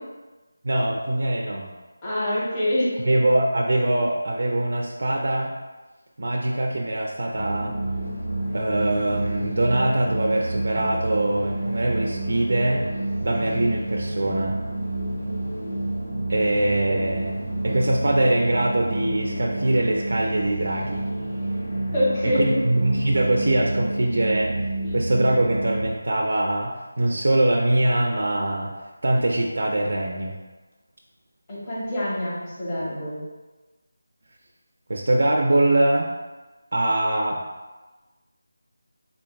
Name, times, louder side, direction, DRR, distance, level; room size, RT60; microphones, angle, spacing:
voice 1, 0.6-1.7 3.1-5.5 6.2-7.8 8.5-12.8 13.2-14.6 16.3-21.0 22.2-24.6 24.9-28.7 29.0-30.4 34.9-36.1 36.7-37.4, right 1 dB, 60° right, -1 dB, 0.4 m, -23 dB
voice 2, 2.0-3.1 21.9-22.5 31.5-33.2, left 1 dB, 15° left, -9 dB, 0.9 m, -25 dB
sound 1, 7.4-25.9, right 2 dB, 65° left, 1.0 m, -29 dB
3.7 x 3.4 x 2.3 m, 1.2 s
figure-of-eight pair, 175°, 0 cm